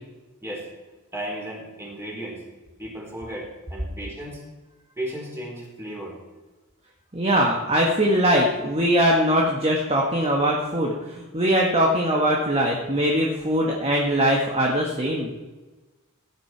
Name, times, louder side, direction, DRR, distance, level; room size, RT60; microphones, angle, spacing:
voice 1, 1.1-2.4 2.8-4.4 5.0-6.2, right 1 dB, 10° right, -3 dB, 4.5 m, -34 dB
voice 2, 7.1-15.3, equal, 30° right, -1 dB, 1.5 m, -21 dB
17.0 x 10.5 x 4.6 m, 1.2 s
head